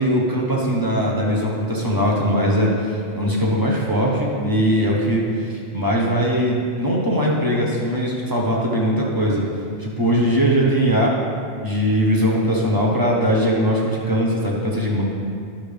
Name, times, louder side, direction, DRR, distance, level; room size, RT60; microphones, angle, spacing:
voice 1, 0.0-9.4 9.8-11.1 11.6-15.0, equal, 20° right, -3 dB, 1.2 m, -20 dB
10.5 x 6.4 x 3.5 m, 2.3 s
omnidirectional pair, 1.1 m